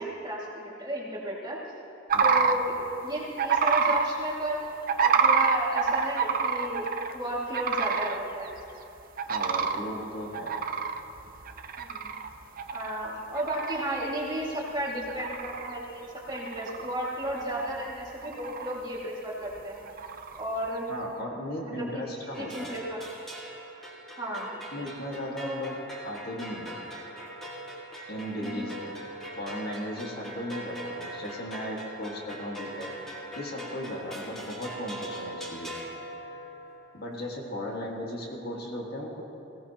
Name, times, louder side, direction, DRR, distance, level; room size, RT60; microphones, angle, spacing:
voice 1, 0.0-1.6 2.2-2.7 3.0-4.7 5.0-6.8 7.1-8.5 11.8-12.1 12.7-19.8 20.4-20.9 21.6-23.0 24.2-24.6 25.4-25.7 28.4-28.7, equal, 20° right, -5 dB, 2.3 m, -33 dB
voice 2, 2.1-2.5 9.3-10.6 20.9-22.8 24.7-25.8 26.0-26.8 28.1-28.9 29.3-32.9 33.3-35.8 36.9-39.2, equal, 50° left, -1 dB, 1.8 m, -36 dB
sound 1, 2.1-2.5 3.4-4.0 4.9-7.1 7.5-8.2 8.6-8.7 9.2-9.8 10.3-12.3 12.6-13.0 13.3-13.9 14.4-14.5 15.0-15.8 16.3-17.0 17.4-17.9 18.2-18.8 19.9-20.4, right 6 dB, 45° right, 0.6 m, -26 dB
sound 2, 22.3-36.8, right 1 dB, ahead, 2.0 m, -41 dB
19.5 x 16.5 x 3.0 m, 2.9 s
head